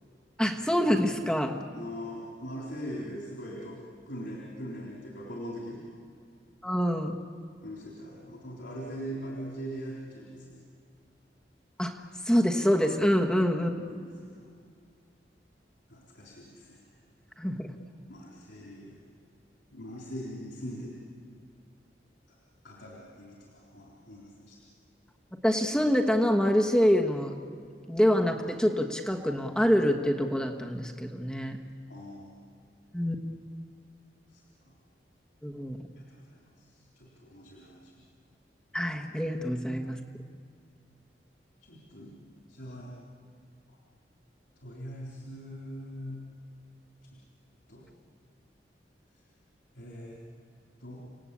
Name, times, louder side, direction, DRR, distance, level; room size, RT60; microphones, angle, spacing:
voice 1, 0.4-1.5 6.6-7.1 11.8-11.9 12.2-13.7 17.4-17.7 25.4-27.3 27.9-31.6 32.9-33.1 35.4-35.8 38.7-40.0, equal, 5° left, 2 dB, 1.3 m, -25 dB
voice 2, 1.7-5.9 7.6-10.6 13.6-14.5 15.9-16.9 18.1-19.0 19.7-21.0 22.3-22.4 22.6-24.6 31.9-32.4 34.3-34.7 36.0-36.2 36.6-37.9 41.6-42.1 42.5-43.0 44.6-46.2 47.0-47.2 47.7-47.9 49.7-50.2 50.8-51.0, equal, 90° left, -3 dB, 4.1 m, -41 dB
30.0 x 18.5 x 8.6 m, 2.2 s
head